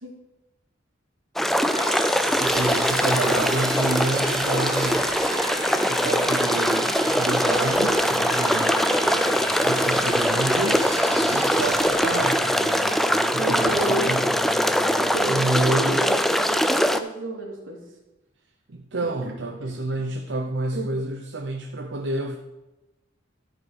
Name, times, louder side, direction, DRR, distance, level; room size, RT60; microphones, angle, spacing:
sound 1, 1.4-17.0, equal, ahead, 0.4 m, -22 dB
sound 2, 1.7-15.6, right 2 dB, 20° right, 1.0 m, -33 dB
voice 1, 2.4-5.1 5.8-8.8 9.6-10.9 11.3-12.5 13.3-14.3 15.3-16.1 18.7-22.4, right 2 dB, 60° right, 3 dB, 0.7 m, -28 dB
voice 2, 13.4-14.1 15.0-17.8 19.2-19.3 19.6-19.7 20.7-20.9, right 2 dB, 80° right, -1 dB, 2.9 m, -31 dB
13.0 x 5.3 x 6.5 m, 1.0 s
head